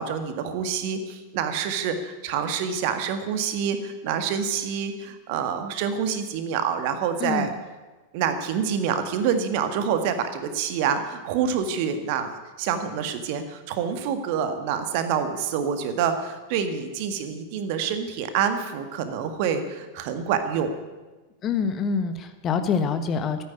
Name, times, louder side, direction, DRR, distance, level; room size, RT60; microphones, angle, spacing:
voice 1, 0.0-7.5 8.1-12.3 12.6-20.7, right 7 dB, 45° right, 8 dB, 1.7 m, -27 dB
voice 2, 7.2-7.5 21.4-23.4, left 5 dB, 30° left, 8 dB, 1.4 m, -25 dB
14.0 x 9.7 x 9.9 m, 1.2 s
figure-of-eight pair, 90°, 0 cm